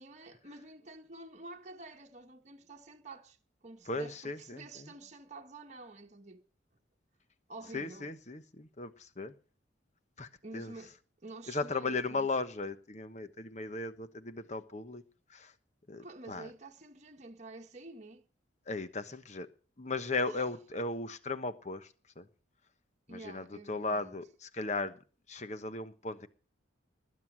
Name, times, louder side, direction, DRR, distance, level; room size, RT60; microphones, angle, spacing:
voice 1, 0.0-6.5 7.5-8.1 10.4-11.0 11.2-12.3 16.0-18.2 20.2-20.4 23.1-24.1, right 2 dB, 35° right, 1.3 m, -49 dB
voice 2, 3.9-4.9 7.7-9.3 10.2-10.7 11.5-15.0 15.3-15.5 15.9-16.5 18.7-19.5 19.8-22.3 23.1-25.0 25.3-26.3, left 3 dB, 40° left, 1.1 m, -37 dB
20.0 x 9.6 x 6.2 m
head